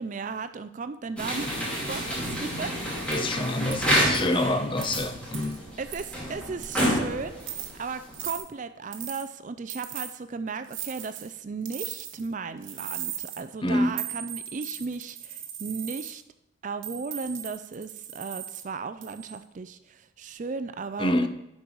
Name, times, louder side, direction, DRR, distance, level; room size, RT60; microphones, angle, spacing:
voice 1, 0.0-1.5 1.9-2.7 4.2-4.8 5.8-7.5 7.8-16.2 16.6-21.3, right 4 dB, 35° right, 0.4 m, -36 dB
sound 1, 1.2-8.4, equal, 5° left, 2.4 m, -29 dB
voice 2, 3.1-5.6 13.6-14.0 21.0-21.3, left 1 dB, 25° left, 0.5 m, -26 dB
sound 2, 3.1-3.2 3.7-3.8 4.1-4.4 4.8-4.9 5.3-5.6 5.9-6.2 6.6-7.0 7.4-7.7 8.1-8.4 8.9-9.3 9.7-10.1 10.7-11.3 11.6-12.3 12.6-13.4 14.0-16.1 16.8-18.6 19.0-19.4, right 10 dB, 65° right, 1.0 m, -38 dB
11.0 x 5.4 x 4.6 m
head